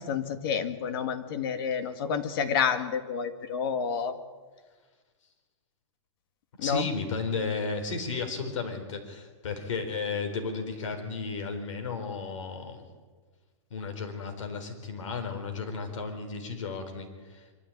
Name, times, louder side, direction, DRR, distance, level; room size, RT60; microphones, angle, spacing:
voice 1, 0.0-4.1 6.6-6.9, left 7 dB, 50° left, 9 dB, 1.7 m, -29 dB
voice 2, 6.6-12.8 13.7-17.5, left 4 dB, 80° left, 6 dB, 4.2 m, -34 dB
24.0 x 13.5 x 8.6 m, 1.4 s
supercardioid pair, 170°, 16 cm